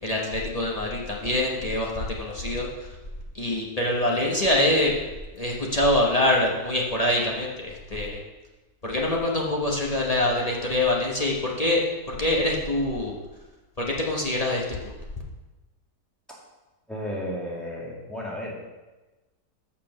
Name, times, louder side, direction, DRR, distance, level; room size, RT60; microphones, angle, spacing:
voice 1, 0.0-2.9 3.3-4.9 5.4-8.2 8.8-11.8 12.1-13.1 13.8-14.9, left 1 dB, 30° left, -3 dB, 0.8 m, -25 dB
voice 2, 16.9-18.5, equal, ahead, -5 dB, 1.8 m, -33 dB
6.9 x 5.7 x 6.5 m, 1.1 s
omnidirectional pair, 1.9 m